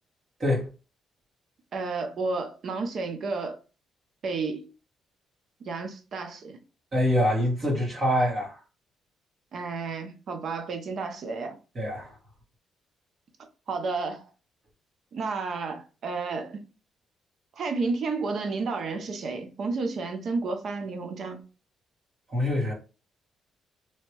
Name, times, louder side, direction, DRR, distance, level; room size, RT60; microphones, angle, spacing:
voice 1, 1.7-3.6 4.2-4.7 5.6-6.6 9.5-11.6 13.7-14.3 15.1-16.7 17.6-21.4, right 4 dB, 60° right, 0.8 m, -31 dB
voice 2, 6.9-8.6 11.7-12.1 22.3-22.7, left 1 dB, 45° right, 1.6 m, -25 dB
3.2 x 2.8 x 3.0 m
cardioid pair, 90°, 0 cm